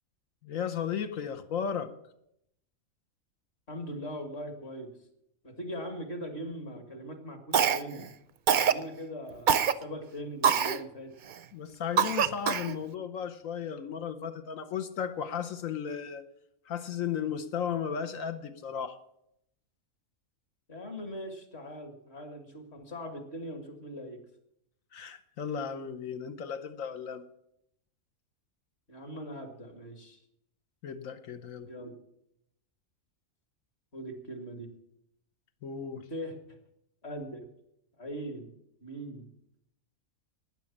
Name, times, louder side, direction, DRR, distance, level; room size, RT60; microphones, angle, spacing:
voice 1, 0.4-1.9 11.5-16.2 16.7-19.0 24.9-27.2 30.8-31.7 35.6-36.1, left 7 dB, 75° left, 9 dB, 1.2 m, -35 dB
voice 2, 3.7-4.9 5.4-8.1 8.6-11.1 20.7-24.2 28.9-30.2 31.7-31.9 33.9-34.7 36.1-36.4 37.0-37.4 38.0-38.5 38.8-39.3, equal, 50° left, 6 dB, 2.2 m, -40 dB
Cough, 7.5-8.1 8.5-8.8 9.5-9.7 10.4-10.8 11.3-11.4 12.0-12.7, right 7 dB, 55° right, 0.6 m, -24 dB
11.5 x 9.7 x 7.2 m, 0.78 s
omnidirectional pair, 1.4 m